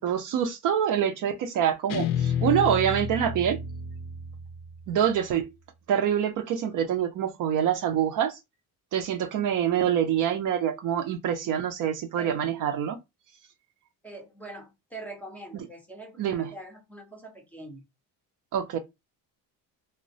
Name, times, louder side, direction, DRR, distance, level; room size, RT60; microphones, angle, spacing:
voice 1, 0.0-3.6 4.9-5.5 5.9-8.4 8.9-13.0 15.5-15.7 16.2-16.5 18.5-18.8, right 9 dB, 50° right, 0.5 m, -26 dB
Guitar, 1.9-5.1, left 6 dB, 65° left, 0.5 m, -31 dB
voice 2, 14.0-17.8, right 2 dB, 5° left, 0.5 m, -43 dB
3.0 x 2.1 x 2.6 m
cardioid pair, 125°, 40 cm